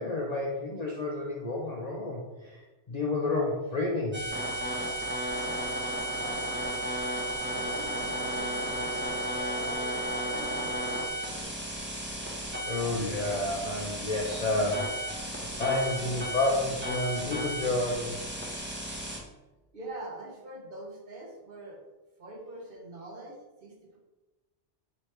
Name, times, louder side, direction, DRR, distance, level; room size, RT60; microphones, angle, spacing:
voice 1, 0.0-4.2 12.6-15.2 15.6-18.2, left 2 dB, 50° left, -2 dB, 0.5 m, -30 dB
sound 1, 4.1-19.2, right 1 dB, 15° right, 0.5 m, -34 dB
voice 2, 6.2-7.1 7.5-11.6 19.7-21.8 22.2-24.0, right 2 dB, 55° right, -1 dB, 0.9 m, -44 dB
3.2 x 3.1 x 4.3 m, 1.1 s
omnidirectional pair, 1.2 m